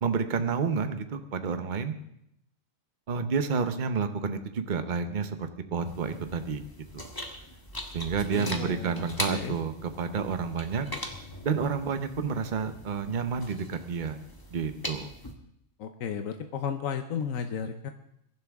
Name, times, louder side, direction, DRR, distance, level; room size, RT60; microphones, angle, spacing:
voice 1, 0.0-1.9 3.1-6.6 6.9-7.1 7.9-10.9 11.4-14.2 14.5-15.1, right 5 dB, 40° right, 8 dB, 1.0 m, -30 dB
sound 1, 5.8-15.3, left 1 dB, 15° left, 1.5 m, -41 dB
voice 2, 8.3-9.5 15.8-17.9, left 7 dB, 90° left, 7 dB, 1.2 m, -34 dB
22.0 x 11.5 x 3.6 m, 0.77 s
omnidirectional pair, 1.4 m